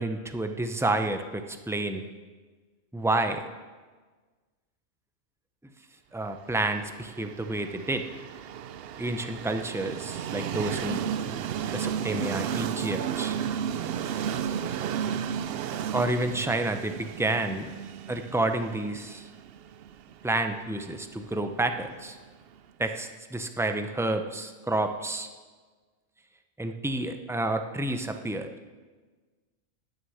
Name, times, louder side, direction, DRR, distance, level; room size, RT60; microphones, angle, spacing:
voice 1, 0.0-2.0 2.9-3.4 6.1-8.0 9.0-11.0 11.7-13.4 15.9-17.8 18.1-19.3 20.2-22.2 22.8-25.3 26.6-28.5, right 2 dB, 5° right, 6 dB, 0.3 m, -29 dB
Train, 6.7-22.5, right 8 dB, 60° right, 0.7 m, -33 dB
13.0 x 6.4 x 9.4 m, 1.4 s
omnidirectional pair, 1.3 m